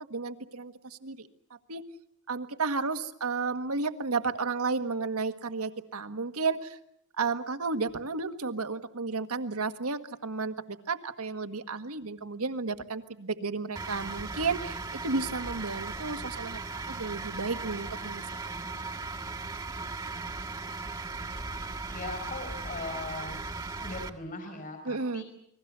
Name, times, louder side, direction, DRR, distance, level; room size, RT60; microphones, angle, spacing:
voice 1, 0.1-0.7 1.0-1.3 1.7-1.8 2.3-6.8 7.2-10.5 10.9-16.6 16.9-18.2 24.8-25.2, right 4 dB, 75° right, 9 dB, 1.6 m, -32 dB
sound 1, 13.8-24.1, right 3 dB, 15° right, 1.6 m, -37 dB
voice 2, 21.9-23.4 23.8-25.2, left 3 dB, 40° left, 5 dB, 5.2 m, -39 dB
29.5 x 21.5 x 6.8 m, 0.70 s
head